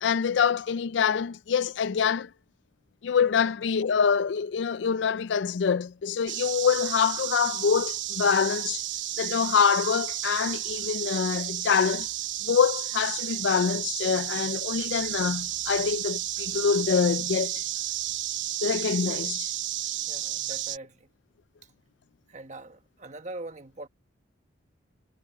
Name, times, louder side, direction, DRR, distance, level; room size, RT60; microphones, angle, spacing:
voice 1, 0.0-2.3 3.0-8.8 9.2-12.1 12.4-17.6 18.6-19.5, left 6 dB, 70° left, 0.4 m, -25 dB
sound 1, 6.3-20.8, right 13 dB, 75° right, 1.0 m, -32 dB
voice 2, 20.1-21.1 22.3-23.9, right 2 dB, 40° right, 1.4 m, -42 dB
head